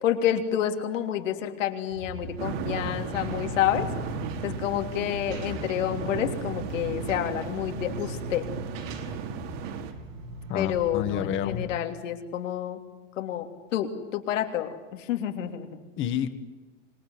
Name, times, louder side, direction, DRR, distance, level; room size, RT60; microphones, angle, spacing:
voice 1, 0.0-3.9 4.4-8.4 10.5-12.8 13.2-13.5 13.7-15.8, left 11 dB, 85° left, 5 dB, 3.3 m, -29 dB
sound 1, 1.9-11.7, equal, 90° right, 6.4 m, -39 dB
sound 2, 2.4-9.9, right 7 dB, 55° right, 2.5 m, -36 dB
voice 2, 10.5-11.7 16.0-16.3, left 10 dB, 30° left, 10 dB, 1.7 m, -29 dB
26.5 x 21.0 x 9.7 m, 1.2 s
supercardioid pair, 155°, 37 cm